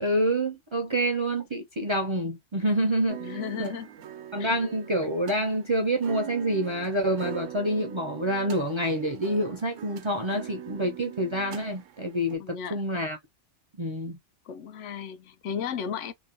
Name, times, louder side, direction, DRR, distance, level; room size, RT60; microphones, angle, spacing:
voice 1, 0.0-3.2 3.6-3.7 4.3-13.2 13.8-14.2, right 1 dB, 40° right, 0.4 m, -27 dB
sound 1, 3.1-12.4, right 11 dB, 85° right, 1.0 m, -42 dB
voice 2, 3.2-3.9 4.4-4.5 12.4-12.8 14.5-16.1, left 7 dB, 80° left, 0.9 m, -35 dB
3.0 x 2.1 x 2.5 m
omnidirectional pair, 1.2 m